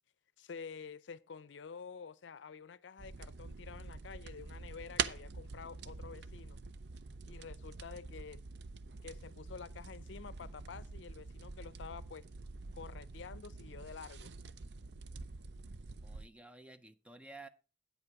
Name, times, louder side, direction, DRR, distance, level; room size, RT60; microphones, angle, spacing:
voice 1, 0.4-6.6 7.3-8.4 9.0-12.2 12.7-14.3, left 5 dB, 80° left, 0.5 m, -49 dB
sound 1, 3.0-16.3, right 5 dB, 65° right, 0.5 m, -45 dB
voice 2, 16.0-17.5, right 2 dB, 5° right, 0.5 m, -53 dB
9.3 x 7.9 x 4.7 m
head